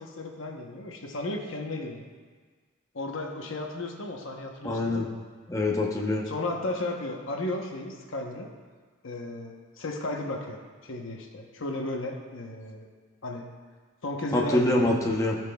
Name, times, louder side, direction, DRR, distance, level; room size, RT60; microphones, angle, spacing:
voice 1, 0.0-2.1 2.9-5.1 6.3-8.5 9.0-12.9 13.2-13.5 14.0-14.9, left 2 dB, 70° left, 2 dB, 0.9 m, -34 dB
voice 2, 4.6-5.1 5.5-6.2 14.3-15.4, left 2 dB, 15° left, -2 dB, 0.8 m, -25 dB
16.0 x 6.0 x 2.3 m, 1.5 s
head